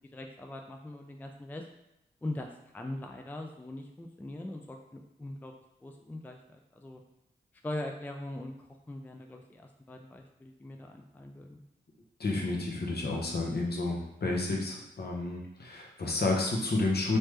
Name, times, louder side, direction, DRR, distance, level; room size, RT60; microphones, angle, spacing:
voice 1, 0.1-1.6 2.2-5.5 5.8-7.0 7.6-11.6, left 1 dB, 10° left, 3 dB, 0.3 m, -41 dB
voice 2, 12.2-17.2, left 2 dB, 55° left, -1 dB, 0.8 m, -30 dB
3.2 x 2.1 x 3.2 m, 0.84 s
supercardioid pair, 40°, 20 cm